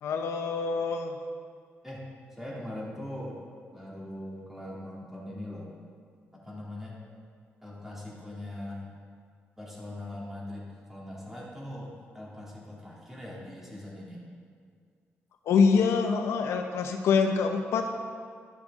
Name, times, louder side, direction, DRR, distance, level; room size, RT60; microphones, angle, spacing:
voice 1, 0.0-1.2 15.5-17.9, left 5 dB, 85° left, 5 dB, 0.7 m, -25 dB
voice 2, 2.3-3.4 3.7-5.7 6.3-7.0 7.6-8.9 9.6-14.2, left 1 dB, 5° right, -5 dB, 2.4 m, -41 dB
12.0 x 6.7 x 3.6 m, 2.1 s
cardioid pair, 105°, 5 cm